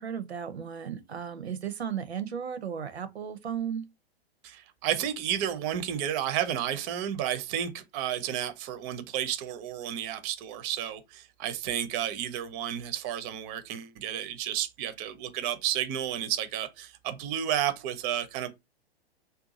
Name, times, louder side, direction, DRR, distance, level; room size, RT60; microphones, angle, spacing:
voice 1, 0.0-3.8, right 8 dB, 85° right, 0.6 m, -35 dB
voice 2, 4.4-18.5, right 10 dB, 30° right, 0.5 m, -32 dB
2.5 x 2.2 x 3.9 m
figure-of-eight pair, 110°, 31 cm